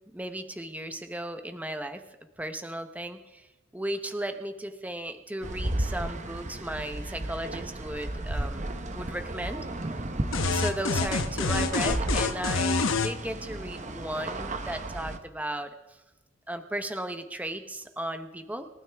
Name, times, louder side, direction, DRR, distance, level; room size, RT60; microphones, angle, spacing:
voice 1, 0.1-2.0 2.4-3.5 3.7-9.6 10.5-15.7 16.5-18.7, right 1 dB, 10° right, 8 dB, 0.8 m, -35 dB
sound 1, 5.4-15.2, right 1 dB, 35° right, 1.0 m, -34 dB
sound 2, 10.3-13.1, left 4 dB, 75° left, 1.0 m, -27 dB
28.5 x 12.5 x 3.5 m, 1.0 s
head